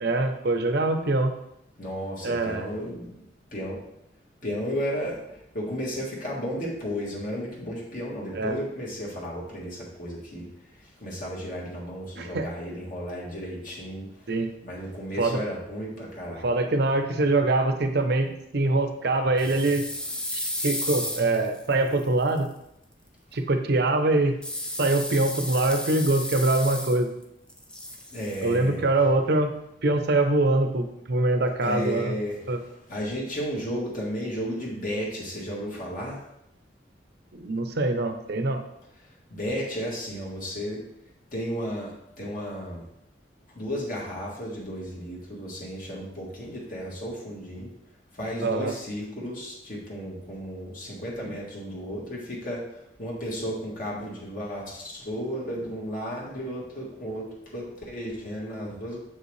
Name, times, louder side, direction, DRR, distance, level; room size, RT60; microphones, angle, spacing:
voice 1, 0.0-1.3 2.2-2.7 8.3-8.6 12.2-12.5 14.3-14.5 15.2-15.4 16.4-19.9 20.3-22.5 23.3-24.3 24.8-27.1 28.4-29.5 29.8-32.2 32.5-32.6 37.3-38.6 48.4-48.7, right 2 dB, 65° right, 7 dB, 0.7 m, -24 dB
voice 2, 1.8-3.1 3.5-3.8 4.4-10.5 11.0-14.1 14.6-16.5 28.1-28.8 31.6-32.4 32.9-36.2 39.3-40.8 41.3-42.8 43.6-47.7 48.1-52.6 53.0-59.0, equal, 50° left, -4 dB, 1.7 m, -33 dB
sound 1, 19.4-22.4 24.4-27.2 27.5-28.6, left 1 dB, 5° left, 0.6 m, -33 dB
7.4 x 5.4 x 3.2 m, 0.80 s
head